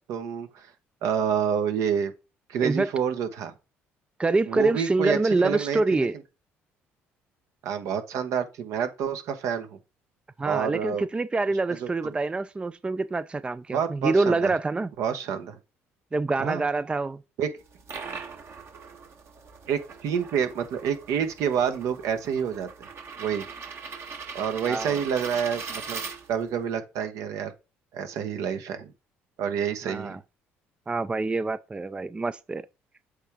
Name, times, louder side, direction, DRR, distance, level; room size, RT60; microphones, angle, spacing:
voice 1, 0.1-0.7 1.0-2.1 2.5-3.5 4.5-6.1 7.6-9.8 10.4-11.0 11.8-12.1 13.7-14.5 15.0-15.6 16.4-16.6 17.4-17.5 19.7-22.9 23.2-23.4 24.3-26.0 26.3-27.5 27.9-28.9 29.4-30.2, right 7 dB, 70° right, 1.1 m, -28 dB
voice 2, 4.2-6.2 10.4-14.9 16.1-17.2 24.7-25.0 29.9-30.2 30.9-32.7, right 3 dB, 20° right, 0.4 m, -26 dB
sound 1, 17.6-26.6, right 5 dB, 50° right, 1.3 m, -40 dB
8.0 x 3.4 x 3.6 m
hypercardioid pair, 65°, 6 cm